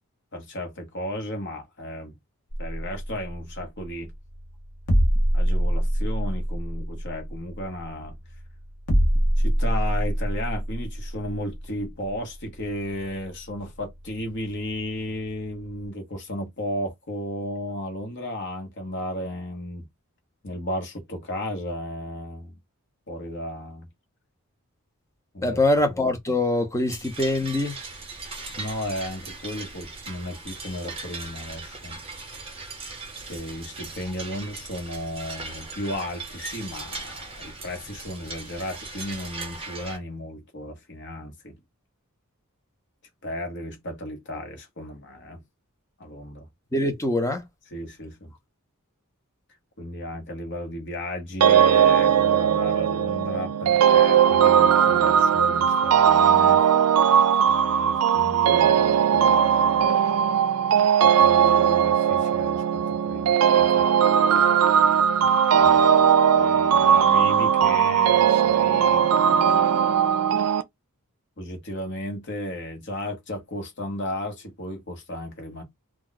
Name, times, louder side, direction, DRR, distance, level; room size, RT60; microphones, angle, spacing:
voice 1, 0.3-2.2 2.6-4.1 5.3-8.2 9.4-19.9 20.4-22.6 23.1-23.9 25.3-25.6 28.6-32.0 33.3-41.6 43.2-45.4 46.0-46.5 47.7-48.3 49.8-56.6 57.4-59.9 61.0-63.9 65.2-66.1 66.3-69.7 71.4-75.6, left 1 dB, 50° left, 1.0 m, -34 dB
sound 1, 2.5-15.9, equal, 80° left, 1.0 m, -27 dB
voice 2, 25.4-27.8 46.7-47.4, left 1 dB, 15° left, 0.6 m, -23 dB
sound 2, 26.9-40.0, right 3 dB, 25° right, 0.9 m, -39 dB
sound 3, 51.4-70.6, right 8 dB, 80° right, 0.4 m, -19 dB
2.3 x 2.3 x 3.8 m
head